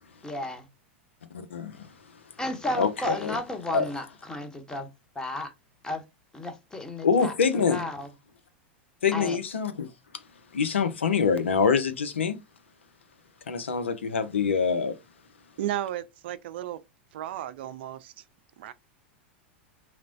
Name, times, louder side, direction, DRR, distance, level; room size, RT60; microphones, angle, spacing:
voice 1, 0.2-0.7 2.4-4.9 5.2-5.5 5.8-6.0 6.3-8.1 9.1-9.4, left 1 dB, 10° left, 0.8 m, -33 dB
voice 2, 1.3-1.9 2.8-3.4 3.7-3.9 7.0-7.8 9.0-9.9 10.5-12.4 13.5-15.0, left 6 dB, 85° left, 0.5 m, -25 dB
voice 3, 15.6-16.8 17.1-18.2 18.6-18.7, right 12 dB, 65° right, 0.3 m, -34 dB
3.0 x 2.0 x 2.5 m
hypercardioid pair, 95°, 6 cm